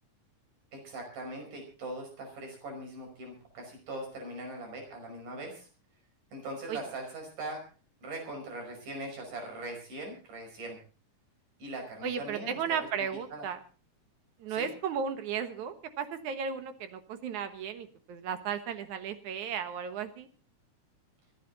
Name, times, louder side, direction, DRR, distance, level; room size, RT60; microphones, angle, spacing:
voice 1, 0.7-5.7 6.3-7.6 8.0-10.8 11.6-12.6 13.3-13.5 14.5-14.7, right 1 dB, 90° right, 2 dB, 7.0 m, -41 dB
voice 2, 12.0-13.6 14.4-20.3, right 7 dB, 75° right, 9 dB, 2.7 m, -35 dB
26.5 x 10.0 x 4.0 m, 0.37 s
omnidirectional pair, 3.5 m